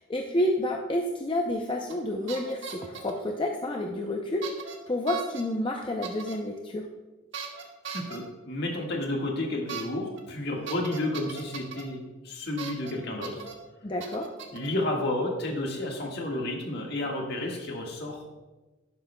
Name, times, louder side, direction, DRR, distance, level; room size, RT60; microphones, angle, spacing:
voice 1, 0.0-6.9 13.8-14.3, left 1 dB, 25° left, 2 dB, 0.5 m, -30 dB
sound 1, 1.9-2.0 2.3-3.2 4.4-4.7 5.1-5.4 6.0-6.3 7.3-8.2 9.7-9.8 10.1-10.2 10.7-11.8 12.6-12.9 13.2-13.5 14.0-14.7, right 7 dB, 65° right, 1.2 m, -38 dB
voice 2, 7.9-13.5 14.5-18.3, left 1 dB, 55° left, 0 dB, 1.6 m, -31 dB
11.5 x 11.0 x 2.2 m, 1.2 s
head